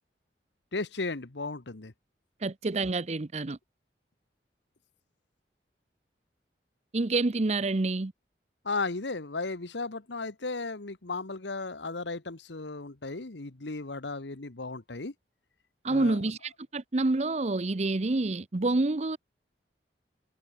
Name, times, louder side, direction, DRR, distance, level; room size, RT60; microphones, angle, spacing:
voice 1, 0.7-1.9 8.6-15.1 15.9-16.2, left 3 dB, 85° left, 1.4 m, -35 dB
voice 2, 2.4-3.6 6.9-8.1 15.8-19.2, right 2 dB, 40° right, 0.7 m, -28 dB
head